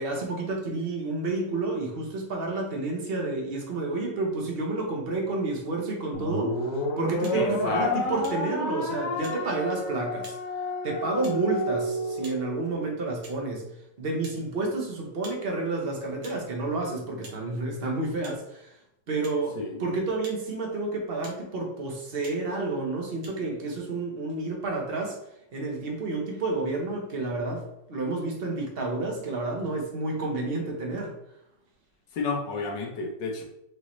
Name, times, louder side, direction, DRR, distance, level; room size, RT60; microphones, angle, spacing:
voice 1, 0.0-6.6 7.0-10.4 10.8-13.6 14.0-18.8 19.1-25.2 25.5-31.1, right 2 dB, 40° right, 0 dB, 0.9 m, -30 dB
sound 1, 6.1-12.6, left 1 dB, 60° left, 1.1 m, -30 dB
sound 2, 7.2-7.4 8.2-8.4 9.2-9.4 10.2-10.4 11.2-11.4 12.2-12.4 13.2-13.4 14.2-14.4 15.2-15.4 16.2-16.4 17.2-17.4 18.2-18.4 19.2-19.4 20.2-20.4 21.2-21.4 22.2-22.4 23.2-23.3, right 2 dB, 75° right, 1.5 m, -46 dB
voice 2, 7.3-8.2 19.5-19.8 32.1-33.4, left 4 dB, 85° left, 1 dB, 1.6 m, -31 dB
5.0 x 2.8 x 3.1 m, 0.83 s
omnidirectional pair, 1.9 m